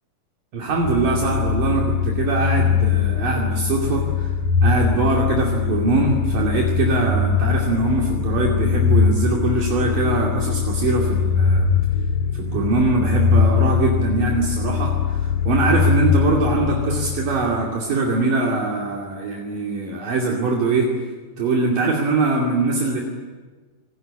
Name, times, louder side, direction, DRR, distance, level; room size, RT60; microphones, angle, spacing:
voice 1, 0.5-4.3 4.6-11.7 12.3-20.9 21.4-23.0, right 3 dB, 65° right, -1 dB, 4.2 m, -22 dB
sound 1, 0.8-17.6, left 6 dB, 65° left, 2.9 m, -21 dB
26.0 x 20.5 x 9.9 m, 1.4 s
omnidirectional pair, 4.2 m